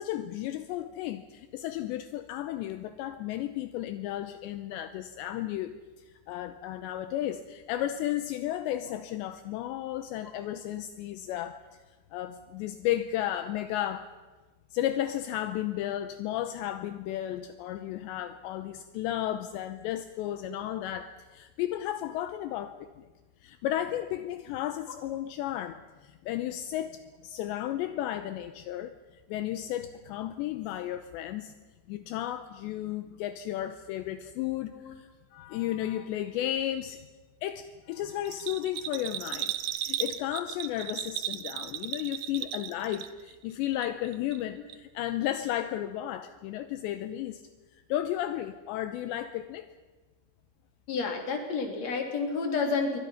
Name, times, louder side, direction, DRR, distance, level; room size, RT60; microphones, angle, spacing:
voice 1, 0.0-5.8 6.1-11.6 12.1-14.1 14.7-23.1 23.4-31.5 31.9-37.1 37.4-39.5 39.8-47.4 47.9-49.7, left 12 dB, 80° left, 9 dB, 3.0 m, -33 dB
Bell, 38.3-43.4 43.6-44.4 44.7-44.8, right 12 dB, 75° right, 2.4 m, -35 dB
voice 2, 50.9-53.0, left 4 dB, 40° left, 2 dB, 4.2 m, -30 dB
27.5 x 24.0 x 5.8 m, 1.3 s
omnidirectional pair, 5.3 m